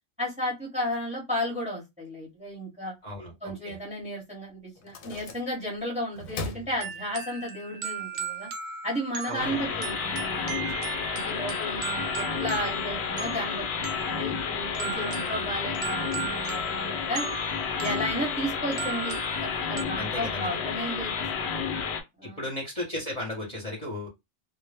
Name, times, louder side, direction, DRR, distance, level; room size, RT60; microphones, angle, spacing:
voice 1, 0.2-2.9 3.4-8.5 8.8-10.6 11.1-17.3 17.8-21.5 22.2-22.4, equal, 5° right, -2 dB, 0.8 m, -33 dB
voice 2, 3.0-3.8 9.3-9.8 15.0-15.8 19.9-20.6 22.2-24.1, left 1 dB, 35° left, -2 dB, 0.8 m, -36 dB
sound 1, 4.0-4.1 4.8-5.8 6.1-7.5, left 2 dB, 90° left, 1.0 m, -39 dB
sound 2, 6.8-19.8, right 6 dB, 60° right, 0.8 m, -37 dB
sound 3, 9.4-22.0, left 6 dB, 65° left, 0.7 m, -31 dB
2.1 x 2.0 x 3.2 m, 0.21 s
omnidirectional pair, 1.3 m